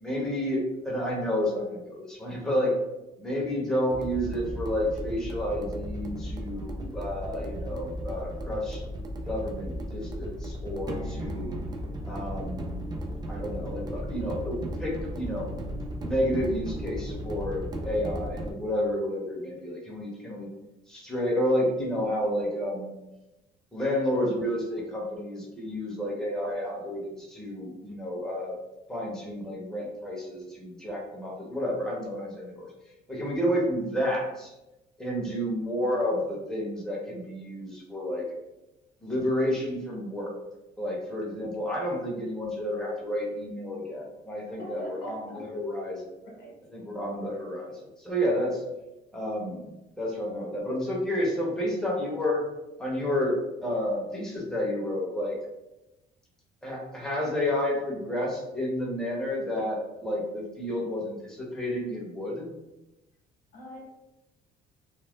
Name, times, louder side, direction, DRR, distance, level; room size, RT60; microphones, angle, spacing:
voice 1, 0.0-2.7 3.2-8.8 9.3-11.6 12.0-12.8 13.3-15.5 16.0-20.5 20.9-22.9 23.7-28.6 28.9-32.7 33.1-34.5 35.0-38.2 39.0-40.3 40.8-46.0 46.7-48.6 49.1-49.7 50.0-52.4 52.8-55.3 56.6-62.5, equal, 5° left, -4 dB, 0.9 m, -30 dB
sound 1, 3.9-18.5, equal, 25° right, 0.4 m, -35 dB
voice 2, 44.4-45.5 46.2-46.6 51.3-51.4 63.5-63.9, equal, 80° left, -1 dB, 0.8 m, -42 dB
2.5 x 2.0 x 3.5 m, 0.96 s
cardioid pair, 110°, 17 cm